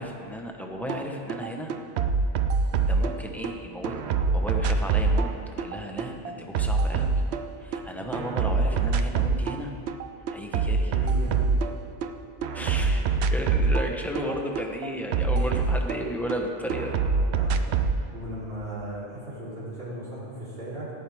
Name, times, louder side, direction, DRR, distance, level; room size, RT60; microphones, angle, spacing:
voice 1, 0.0-1.7 2.9-4.0 4.3-7.1 7.6-9.7 10.3-11.2 12.5-17.1, equal, ahead, 1 dB, 1.0 m, -34 dB
sound 1, 0.9-1.0 1.3-3.5 3.8-7.8 8.1-9.6 9.9-12.1 12.4-16.4 16.7-18.0, right 4 dB, 80° right, 0.8 m, -25 dB
voice 2, 10.9-11.7 17.3-17.6 18.1-20.9, right 1 dB, 60° right, -9 dB, 3.7 m, -37 dB
17.0 x 9.4 x 3.6 m, 2.5 s
omnidirectional pair, 1.1 m